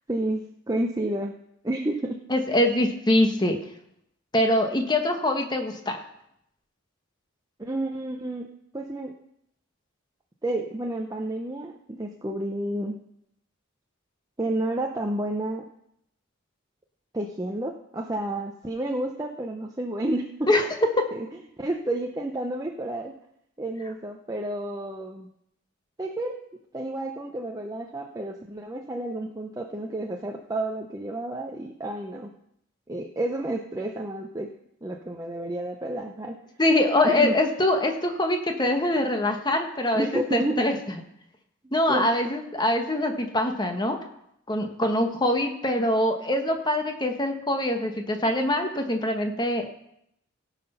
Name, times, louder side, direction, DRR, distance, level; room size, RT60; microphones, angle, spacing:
voice 1, 0.1-1.3 1.6-2.2 7.6-8.5 8.7-9.1 10.4-13.0 14.4-15.6 17.1-20.5 21.1-21.3 21.6-23.1 23.6-25.3 26.0-26.4 26.7-32.3 32.9-34.5 34.8-36.4 37.0-37.6 39.9-40.6 41.9-42.1, right 1 dB, 15° right, 1 dB, 0.6 m, -30 dB
voice 2, 2.3-3.6 4.3-6.0 20.5-20.6 20.9-21.1 36.6-40.1 40.3-40.7 41.7-44.0 44.5-49.7, left 1 dB, 20° left, 4 dB, 1.2 m, -24 dB
17.0 x 5.8 x 5.5 m, 0.76 s
head